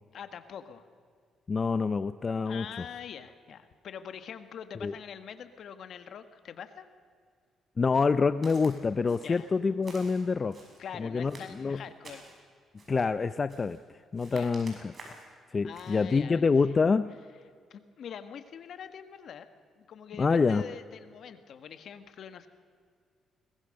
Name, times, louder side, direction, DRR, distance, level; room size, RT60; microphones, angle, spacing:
voice 1, 0.1-0.9 2.4-6.9 9.2-9.5 10.8-12.2 14.3-14.5 15.6-16.5 17.7-19.5 19.8-22.5, left 8 dB, 65° left, 10 dB, 1.6 m, -44 dB
voice 2, 1.5-2.9 4.8-4.9 7.8-10.6 11.0-11.8 12.9-13.8 14.1-14.9 15.5-17.1 20.2-20.6, left 4 dB, 35° left, 13 dB, 0.5 m, -26 dB
Walk footsteps, 8.4-8.7 9.1-9.5 9.8-10.8 11.3-12.4 12.8-13.1 13.5-13.8 14.1-15.3 15.7-16.0, right 2 dB, 40° right, 6.4 m, -50 dB
22.0 x 19.0 x 6.6 m, 2.1 s
cardioid pair, 90°, 0 cm